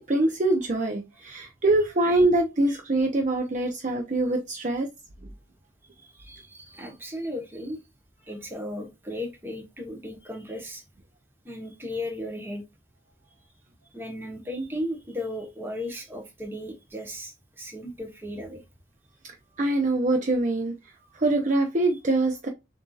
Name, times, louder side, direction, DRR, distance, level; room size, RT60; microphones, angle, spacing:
voice 1, 0.1-4.9 19.6-20.7 21.1-22.5, right 2 dB, 40° right, 0.6 m, -24 dB
voice 2, 6.0-7.8 8.3-10.8 11.4-12.6 13.9-18.6, left 1 dB, 10° right, 1.0 m, -36 dB
6.6 x 2.7 x 2.4 m
head